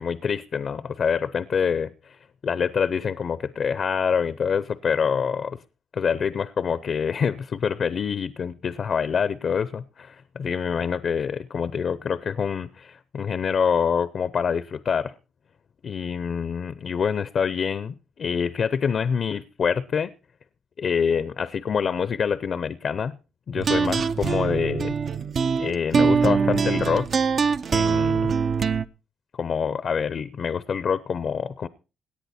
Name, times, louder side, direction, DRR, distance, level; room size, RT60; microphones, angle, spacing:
voice 1, 0.0-2.2 2.4-5.6 5.9-15.1 15.8-20.1 20.8-23.2 23.5-24.9 25.6-27.1 27.7-28.3 29.4-31.7, left 6 dB, 50° left, 17 dB, 0.6 m, -26 dB
sound 1, 23.5-28.8, right 5 dB, 50° right, 0.6 m, -23 dB
17.5 x 10.0 x 4.3 m, 0.33 s
cardioid pair, 90°, 0 cm